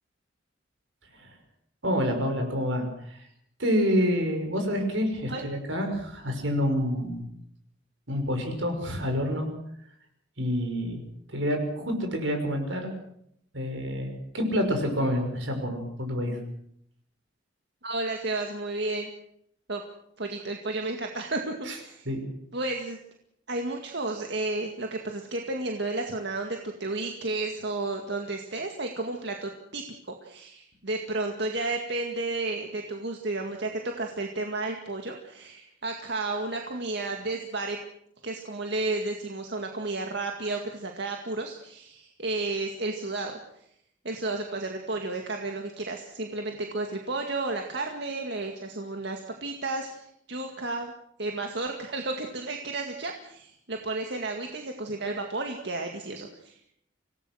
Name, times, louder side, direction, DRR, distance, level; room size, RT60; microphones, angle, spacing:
voice 1, 1.8-2.9 3.6-7.2 8.1-9.5 10.4-11.0 11.3-12.9 13.5-16.4 21.7-21.8 22.1-22.2, equal, 85° right, 4 dB, 6.0 m, -27 dB
voice 2, 17.8-19.1 19.7-19.8 20.2-22.1 22.5-23.0 23.5-37.8 38.2-43.4 44.0-50.0 50.3-50.9 51.2-56.6, right 2 dB, 65° right, 3 dB, 2.1 m, -32 dB
25.5 x 18.0 x 6.4 m, 0.70 s
head